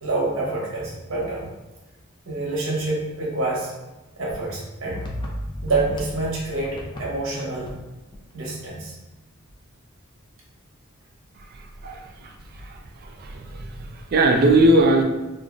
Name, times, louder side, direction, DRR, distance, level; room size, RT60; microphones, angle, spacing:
voice 1, 0.0-1.5 2.3-3.7 4.2-5.0 5.6-7.7 8.3-8.9 11.8-11.9, right 2 dB, 65° right, -4 dB, 0.9 m, -27 dB
sound 1, 4.3-6.3 6.6-7.1 7.3-7.8 8.1-8.3 8.7-8.8 9.5-9.9, left 1 dB, 20° left, 0.4 m, -40 dB
sound 2, 4.9-8.0, equal, 70° left, 0.6 m, -36 dB
voice 2, 11.8-15.0, right 1 dB, 45° right, 2 dB, 0.4 m, -20 dB
2.5 x 2.0 x 3.6 m, 1.1 s
head